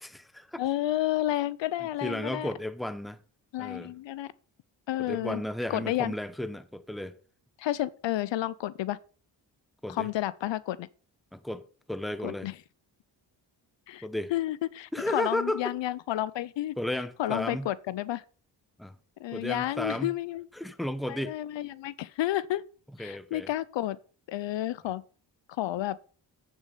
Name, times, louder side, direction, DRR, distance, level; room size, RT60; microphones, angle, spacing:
voice 1, 0.0-0.6 2.0-3.2 3.6-3.9 5.0-7.2 9.8-10.1 11.3-12.5 14.0-14.3 14.9-15.7 16.8-17.7 18.8-19.0 19.3-20.1 20.6-21.4 23.0-23.5, left 1 dB, ahead, 0.8 m, -33 dB
voice 2, 0.6-2.5 3.5-4.3 4.9-5.4 5.7-6.1 7.6-9.0 9.9-10.9 12.2-12.6 13.9-16.8 17.2-18.2 19.2-20.5 21.1-22.6 23.0-24.0 24.3-25.0 25.6-26.0, left 14 dB, 70° left, 0.6 m, -31 dB
8.2 x 6.3 x 5.5 m
cardioid pair, 60°, 46 cm